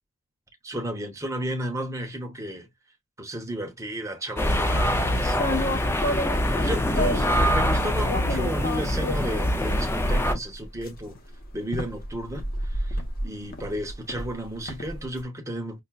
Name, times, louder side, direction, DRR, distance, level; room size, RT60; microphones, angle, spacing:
voice 1, 0.6-2.7 3.2-6.3 6.6-11.2 11.5-15.8, right 1 dB, 15° right, 0.8 m, -33 dB
sound 1, 4.4-10.3, equal, 10° left, 0.3 m, -24 dB
sound 2, 5.3-7.4 8.1-15.1, left 1 dB, 40° left, 0.8 m, -31 dB
5.6 x 2.2 x 2.3 m
head